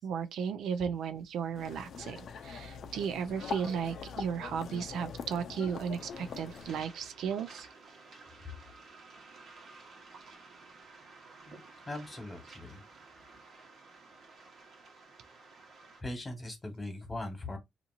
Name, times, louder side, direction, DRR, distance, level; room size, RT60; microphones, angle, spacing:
voice 1, 0.0-7.7, right 7 dB, 85° right, 0.4 m, -35 dB
sound 1, 1.5-6.8, left 6 dB, 65° left, 0.5 m, -43 dB
Waves surf, 6.0-16.0, right 3 dB, 60° right, 1.2 m, -54 dB
voice 2, 11.5-12.8 16.0-17.6, left 2 dB, 20° left, 1.4 m, -40 dB
2.8 x 2.5 x 2.5 m
cardioid pair, 85°, 0 cm